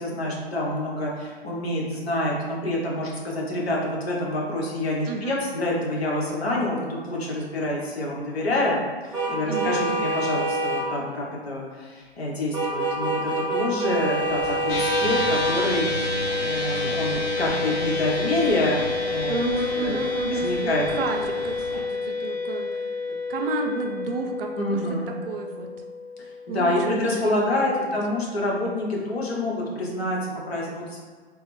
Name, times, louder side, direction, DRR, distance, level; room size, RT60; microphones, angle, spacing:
voice 1, 0.0-8.8 9.3-15.9 16.4-18.8 19.1-19.4 19.8-20.0 20.3-21.1 24.6-25.2 26.5-31.0, left 1 dB, 75° left, -3 dB, 1.0 m, -27 dB
voice 2, 5.1-5.4 9.4-10.1 19.3-24.8 25.3-25.7 26.5-27.9, right 4 dB, 60° right, 3 dB, 0.5 m, -31 dB
sound 1, 9.1-10.8 12.5-15.5, right 1 dB, 10° right, 0.7 m, -26 dB
sound 2, 14.2-21.8, equal, 50° left, 1.5 m, -40 dB
sound 3, 14.7-27.2, left 3 dB, 25° left, 0.5 m, -29 dB
3.3 x 2.0 x 3.1 m, 1.6 s
figure-of-eight pair, 115°, 32 cm